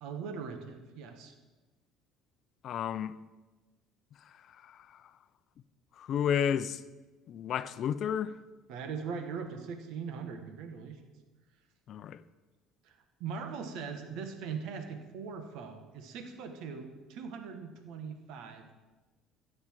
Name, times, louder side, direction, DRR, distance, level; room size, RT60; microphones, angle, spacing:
voice 1, 0.0-1.3 8.7-11.0 12.8-18.7, right 6 dB, 75° right, 1.6 m, -40 dB
voice 2, 2.6-3.1 4.6-4.9 6.0-6.8 7.3-8.3 11.9-12.2, left 8 dB, 55° left, 0.6 m, -31 dB
13.0 x 9.7 x 4.7 m
supercardioid pair, 90°, 0 cm